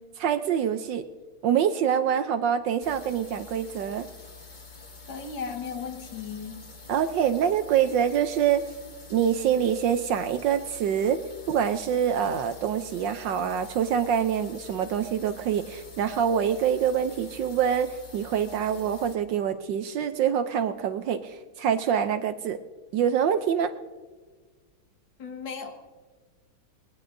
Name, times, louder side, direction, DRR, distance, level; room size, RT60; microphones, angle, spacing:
voice 1, 0.2-1.0 1.4-4.1 6.9-8.6 9.1-11.2 11.5-22.6 22.9-23.7, right 8 dB, 70° right, 10 dB, 1.2 m, -25 dB
sound 1, 2.8-19.1, left 4 dB, 30° left, 1.1 m, -47 dB
voice 2, 5.1-6.6 25.2-25.8, left 5 dB, 65° left, 4 dB, 2.0 m, -36 dB
21.0 x 20.0 x 2.6 m, 1.4 s
omnidirectional pair, 2.3 m